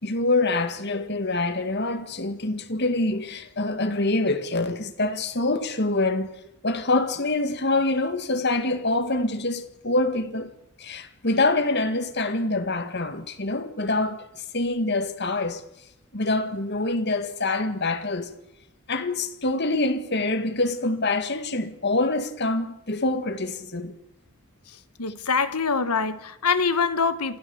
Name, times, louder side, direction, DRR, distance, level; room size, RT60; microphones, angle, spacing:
voice 1, 0.0-6.3 6.6-10.5 10.8-15.6 16.1-18.3 18.9-23.9, left 2 dB, 50° left, 1.9 m, -25 dB
voice 2, 24.7-27.4, left 5 dB, 90° left, 1.3 m, -25 dB
27.5 x 14.0 x 7.1 m
head